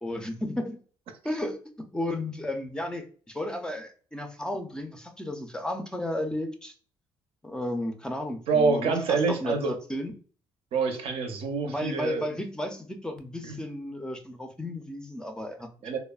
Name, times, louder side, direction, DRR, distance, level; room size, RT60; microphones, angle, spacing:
voice 1, 0.0-0.8 1.2-1.6 1.9-6.7 7.4-10.1 11.7-15.7, left 1 dB, 10° left, 0.4 m, -33 dB
voice 2, 8.5-9.8 10.7-12.4 13.4-13.6 15.8-16.0, right 4 dB, 70° right, 0.6 m, -26 dB
3.1 x 2.0 x 2.2 m
cardioid pair, 105°, 10 cm